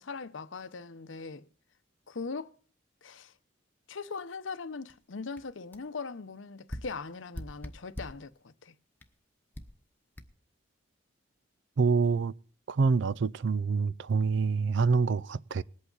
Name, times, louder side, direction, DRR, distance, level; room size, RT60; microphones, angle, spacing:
voice 1, 0.0-1.5 2.1-2.6 3.0-3.3 3.9-8.7, left 4 dB, 80° left, 0.8 m, -40 dB
sound 1, 4.9-5.0 5.4-5.5 5.7-5.9 6.7-8.3 9.0-9.1 9.5-9.8 10.2-10.3, equal, 10° left, 1.0 m, -42 dB
voice 2, 11.8-12.3 12.7-15.6, right 4 dB, 65° right, 0.4 m, -26 dB
20.0 x 8.5 x 3.9 m
head